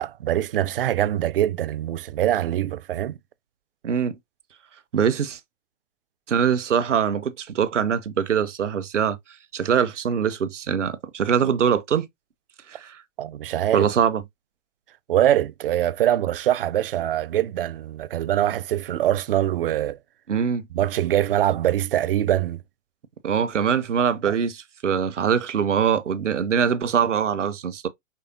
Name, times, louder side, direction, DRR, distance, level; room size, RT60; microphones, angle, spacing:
voice 1, 0.0-3.2 13.2-13.9 15.1-20.0 20.7-22.6 24.3-24.4, right 12 dB, 45° right, 0.5 m, -23 dB
voice 2, 4.9-5.4 6.3-9.2 9.5-12.1 12.7-13.0 13.7-14.2 20.3-20.6 23.2-27.9, right 7 dB, 70° right, 0.9 m, -23 dB
5.7 x 3.3 x 2.8 m
figure-of-eight pair, 115°, 38 cm